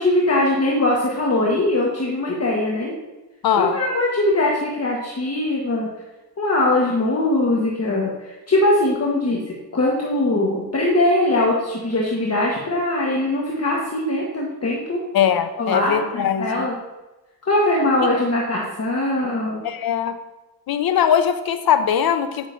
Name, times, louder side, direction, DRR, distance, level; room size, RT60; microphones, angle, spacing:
voice 1, 0.0-2.9 3.6-5.9 6.4-9.4 9.7-15.0 15.6-16.7 17.4-19.6, left 1 dB, 40° left, -3 dB, 1.4 m, -21 dB
voice 2, 3.4-3.8 15.1-16.6 19.6-20.2 20.7-22.5, left 8 dB, 70° left, 10 dB, 0.7 m, -20 dB
9.5 x 6.1 x 2.7 m, 1.1 s
cardioid pair, 65°, 38 cm